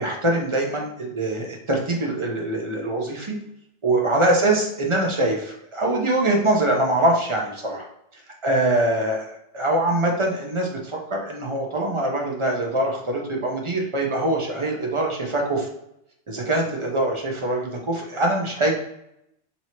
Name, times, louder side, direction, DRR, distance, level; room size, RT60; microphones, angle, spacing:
voice 1, 0.0-3.4 3.8-7.8 8.4-15.7 16.3-18.8, right 1 dB, 30° right, 0 dB, 0.7 m, -23 dB
4.6 x 2.8 x 2.9 m, 0.79 s
omnidirectional pair, 1.2 m